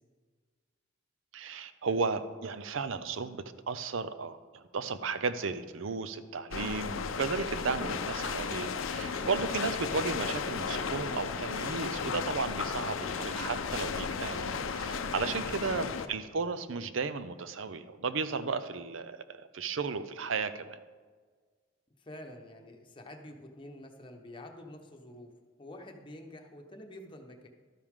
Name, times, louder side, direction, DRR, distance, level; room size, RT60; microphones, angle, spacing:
voice 1, 1.3-14.4 14.7-20.8, right 4 dB, 75° right, 12 dB, 0.6 m, -34 dB
sound 1, 6.5-16.1, left 5 dB, 85° left, 0.6 m, -34 dB
voice 2, 22.0-25.3 25.6-27.5, left 1 dB, 25° left, 3 dB, 1.0 m, -48 dB
12.5 x 9.7 x 3.7 m, 1.5 s
head